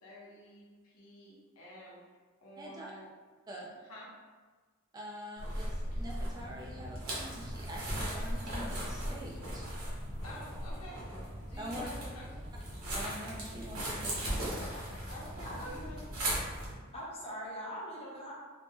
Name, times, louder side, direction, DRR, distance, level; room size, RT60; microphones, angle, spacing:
voice 1, 0.0-2.0 2.4-3.1 3.9-4.3 10.2-12.4 15.1-16.1, left 1 dB, 80° left, -5 dB, 0.8 m, -50 dB
voice 2, 2.6-2.9 3.5-3.8 4.9-9.6 11.6-11.9 12.9-14.6, equal, 20° right, -3 dB, 0.3 m, -45 dB
sound 1, 5.4-16.7, right 1 dB, 75° right, 0.9 m, -38 dB
voice 3, 16.7-18.3, equal, 30° left, -6 dB, 0.8 m, -42 dB
2.5 x 2.1 x 3.5 m, 1.4 s
head